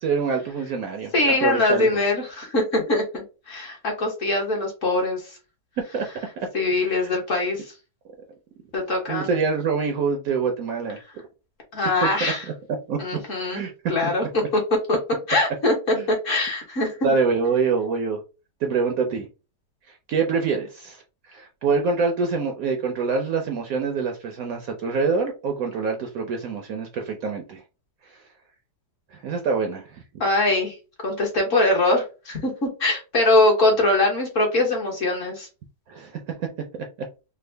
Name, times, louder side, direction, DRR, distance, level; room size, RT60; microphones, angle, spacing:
voice 1, 0.0-2.0 5.9-6.0 6.8-7.1 9.1-11.0 12.0-12.3 12.9-13.0 13.5-13.7 14.0-14.1 15.9-16.1 17.0-18.2 18.6-19.3 19.9-21.0 21.3-27.6 29.1-30.0 35.9-36.5 36.7-36.8, right 5 dB, 70° right, 0.9 m, -25 dB
voice 2, 1.1-5.4 6.5-7.6 8.7-9.3 11.7-12.4 13.0-14.6 14.9-15.0 15.3-17.1 30.2-30.7 31.0-35.5, left 2 dB, 50° left, 1.4 m, -22 dB
3.5 x 2.1 x 3.3 m
omnidirectional pair, 1.9 m